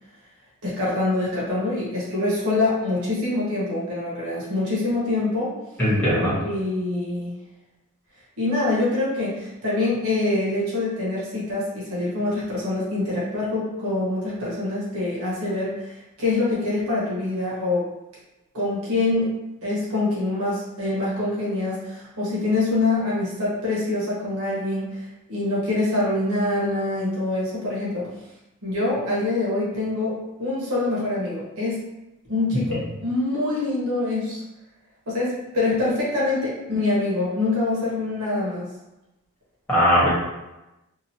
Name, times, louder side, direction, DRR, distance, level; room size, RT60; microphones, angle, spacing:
voice 1, 0.6-5.5 6.4-7.3 8.4-17.9 18.5-19.3 19.6-28.1 28.6-31.8 32.3-34.4 35.1-38.7, left 2 dB, 80° right, -7 dB, 1.1 m, -25 dB
voice 2, 5.8-6.3 39.7-40.1, equal, 10° left, -10 dB, 1.3 m, -19 dB
2.9 x 2.4 x 2.7 m, 0.99 s
head